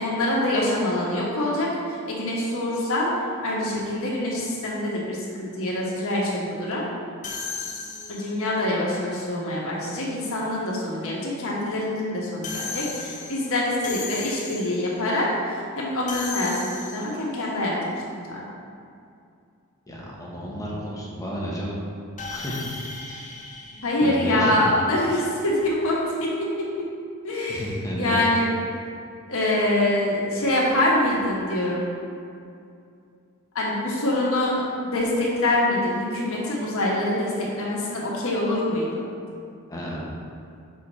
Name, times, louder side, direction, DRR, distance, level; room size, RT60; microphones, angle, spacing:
voice 1, 0.0-1.7 2.1-3.1 3.4-6.8 8.1-15.3 15.8-18.0 18.3-18.4 23.8-26.9 27.2-28.5 29.3-31.9 33.5-34.5 34.8-39.0, left 1 dB, 65° left, -5 dB, 1.5 m, -25 dB
sound 1, 7.2-8.5 12.4-15.0 16.1-17.3 22.2-24.7, left 4 dB, 35° left, 0.6 m, -36 dB
voice 2, 19.9-21.8 22.3-22.8 23.1-23.3 24.0-24.7 27.5-28.2 39.7-40.0, equal, 15° left, -4 dB, 1.1 m, -32 dB
6.1 x 4.8 x 4.2 m, 2.4 s
head